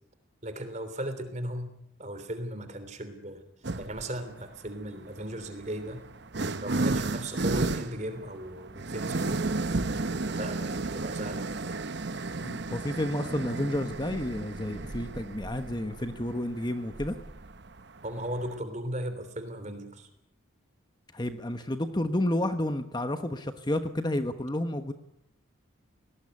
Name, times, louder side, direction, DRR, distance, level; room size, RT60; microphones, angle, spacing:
voice 1, 0.4-1.7 2.0-3.4 3.8-6.0 6.6-9.4 10.3-11.7 18.0-20.1, right 1 dB, 35° right, 10 dB, 3.3 m, -37 dB
sound 1, 3.6-4.1 5.1-18.6, right 3 dB, 55° right, 0.9 m, -33 dB
voice 2, 12.4-17.1 21.1-24.9, left 1 dB, 20° left, 8 dB, 1.1 m, -31 dB
21.5 x 18.5 x 9.7 m, 0.79 s
head